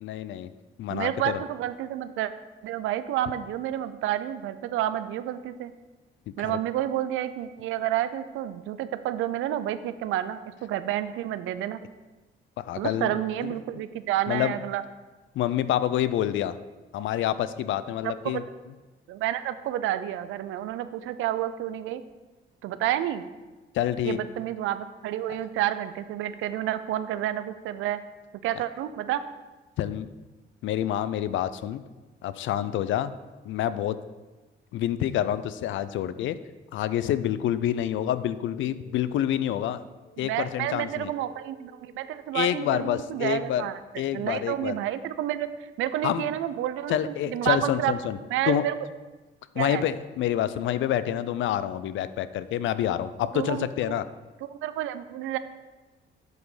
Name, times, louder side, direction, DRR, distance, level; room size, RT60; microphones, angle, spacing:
voice 1, 0.0-0.5 0.8-1.4 6.4-6.6 12.6-13.1 13.4-13.5 14.3-14.5 15.4-16.6 16.9-18.4 23.7-24.2 29.8-30.1 30.6-31.8 32.2-33.1 33.4-34.0 34.7-36.4 36.7-39.8 40.2-41.1 42.3-43.6 44.0-44.7 46.0-46.3 46.9-48.2 48.5-48.7 49.5-54.0, left 11 dB, 75° left, 14 dB, 0.4 m, -27 dB
voice 2, 0.9-2.3 2.6-5.7 6.4-11.8 12.8-14.8 18.0-18.4 19.1-22.0 22.6-23.2 24.0-28.0 28.4-29.2 40.2-43.8 44.1-47.9 48.3-48.7 49.6-49.8 53.3-54.0 54.6-55.4, right 12 dB, 90° right, 13 dB, 0.5 m, -30 dB
sound 1, 37.3-42.9, right 1 dB, 50° left, 2.7 m, -57 dB
7.9 x 5.2 x 4.9 m, 1.2 s
cardioid pair, 90°, 20 cm